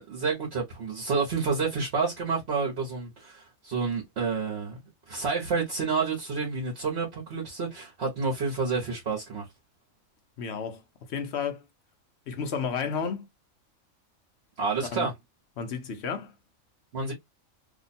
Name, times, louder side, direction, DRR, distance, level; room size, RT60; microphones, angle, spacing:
voice 1, 0.0-4.8 5.1-9.4 14.6-15.1 16.9-17.1, right 4 dB, 55° right, 1.1 m, -29 dB
voice 2, 10.4-10.8 11.1-11.7 12.3-13.3 14.8-15.1 15.6-16.3, left 6 dB, 55° left, 1.0 m, -32 dB
2.9 x 2.2 x 4.0 m
omnidirectional pair, 1.4 m